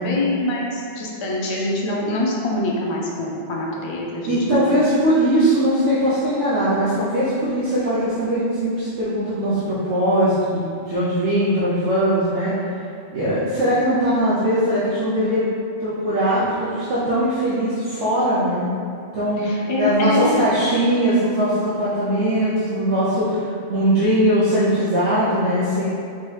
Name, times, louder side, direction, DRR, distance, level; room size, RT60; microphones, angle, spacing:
voice 1, 0.0-4.6 19.4-20.4, left 1 dB, 45° left, -3 dB, 0.3 m, -24 dB
voice 2, 4.3-12.5 13.1-15.4 15.8-18.7 19.1-25.8, right 1 dB, 75° right, -10 dB, 1.0 m, -20 dB
4.4 x 3.0 x 3.2 m, 2.4 s
omnidirectional pair, 1.2 m